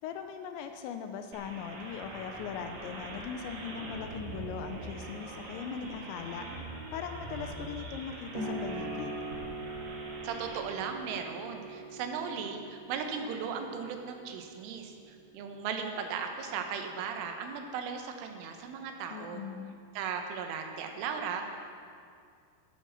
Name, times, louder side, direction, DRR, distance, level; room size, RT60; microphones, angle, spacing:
voice 1, 0.0-6.5 6.9-9.2 19.1-19.8, left 7 dB, 85° left, 7 dB, 2.8 m, -40 dB
sound 1, 1.3-10.6, right 2 dB, 75° right, 4.1 m, -43 dB
sound 2, 8.3-15.5, right 2 dB, 45° right, 1.3 m, -42 dB
voice 2, 10.2-19.4 20.0-21.5, right 6 dB, 90° right, 4 dB, 3.6 m, -37 dB
12.0 x 10.5 x 6.5 m, 2.3 s
omnidirectional pair, 5.5 m